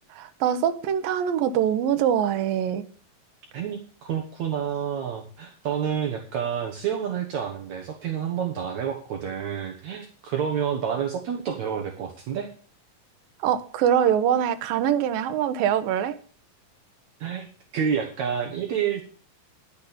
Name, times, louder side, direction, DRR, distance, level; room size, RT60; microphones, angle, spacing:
voice 1, 0.1-2.9 13.4-16.2, right 9 dB, 80° right, 2.6 m, -23 dB
voice 2, 3.5-12.5 17.2-19.0, right 8 dB, 60° right, 2.2 m, -29 dB
10.5 x 8.4 x 6.8 m
omnidirectional pair, 4.1 m